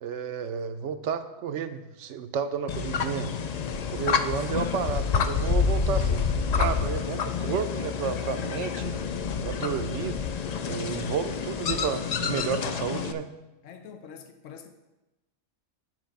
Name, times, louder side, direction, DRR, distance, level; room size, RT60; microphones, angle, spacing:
voice 1, 0.0-3.3 3.9-6.2 6.6-9.0 9.5-10.2 10.6-13.3, right 7 dB, 75° right, 9 dB, 0.9 m, -31 dB
sound 1, 2.7-13.1, left 6 dB, 65° left, 0.4 m, -28 dB
voice 2, 13.6-14.7, left 7 dB, 85° left, 7 dB, 1.0 m, -45 dB
9.6 x 5.0 x 5.2 m, 1.0 s
omnidirectional pair, 1.3 m